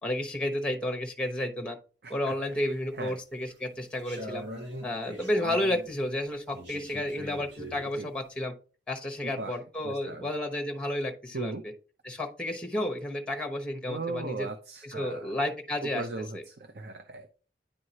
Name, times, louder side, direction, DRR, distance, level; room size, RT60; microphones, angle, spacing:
voice 1, 0.0-1.8 2.1-4.5 4.8-8.5 8.9-11.7 12.0-14.5 14.8-16.1 16.3-16.4, left 1 dB, 5° left, 4 dB, 1.0 m, -32 dB
voice 2, 2.0-2.3 3.0-3.2 8.0-8.1 9.2-9.6 9.8-10.3 11.3-11.6 13.9-15.3 15.9-17.3, right 3 dB, 65° right, 7 dB, 0.7 m, -38 dB
sound 1, 2.3-3.0 3.5-5.9 6.5-7.9, equal, 85° right, 1.9 m, -41 dB
10.0 x 4.7 x 2.9 m, 0.38 s
head